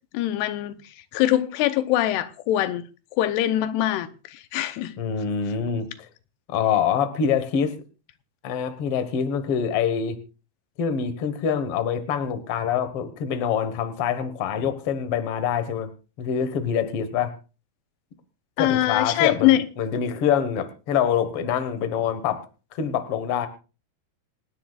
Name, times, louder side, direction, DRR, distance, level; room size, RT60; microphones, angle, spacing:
voice 1, 0.1-0.8 1.1-2.8 3.1-4.9 18.6-19.7, left 13 dB, 85° left, 2.9 m, -23 dB
voice 2, 5.0-6.1 6.5-7.7 8.4-10.2 10.8-15.9 16.2-17.3 18.6-22.4 22.7-23.5, left 7 dB, 60° left, 1.5 m, -25 dB
26.5 x 10.0 x 2.4 m
omnidirectional pair, 4.7 m